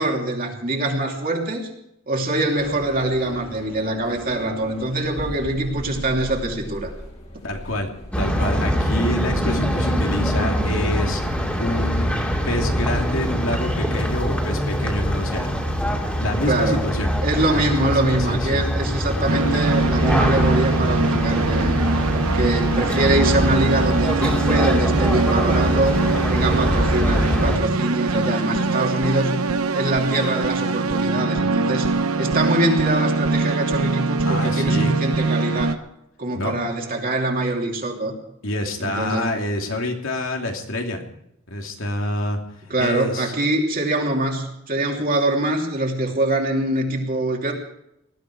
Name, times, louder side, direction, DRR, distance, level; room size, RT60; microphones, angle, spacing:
voice 1, 0.0-1.7 2.1-6.9 16.4-16.8 17.2-21.8 22.1-26.0 26.3-29.4 29.7-31.9 32.2-35.8 36.2-38.2 38.8-39.3 42.7-47.5, right 1 dB, 40° right, 1 dB, 2.9 m, -23 dB
sound 1, 2.6-11.7, equal, 30° left, 3.0 m, -39 dB
voice 2, 7.4-7.9 8.2-11.2 11.6-12.1 12.4-15.6 16.1-17.1 17.5-18.6 34.2-34.9 36.3-36.5 38.4-41.0 41.5-42.4 42.8-43.3, left 1 dB, 65° left, 2 dB, 2.8 m, -27 dB
sound 2, 8.1-27.6, equal, 5° left, 2.6 m, -23 dB
sound 3, 19.2-35.7, right 3 dB, 90° right, 1.0 m, -22 dB
19.5 x 13.5 x 4.8 m, 0.79 s
head